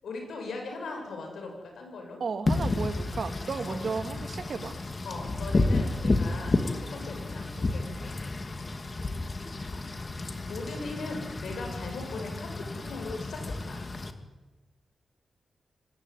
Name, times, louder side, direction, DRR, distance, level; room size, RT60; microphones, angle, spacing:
voice 1, 0.0-2.2 3.6-3.9 5.0-8.2 9.6-9.9 10.2-13.9, left 3 dB, 80° left, 3 dB, 7.9 m, -39 dB
voice 2, 2.2-4.8, right 5 dB, 60° right, 8 dB, 2.5 m, -34 dB
Wind / Rain, 2.5-14.1, left 2 dB, 35° left, 2.4 m, -31 dB
25.5 x 19.0 x 9.3 m, 1.2 s
cardioid pair, 75°, 0 cm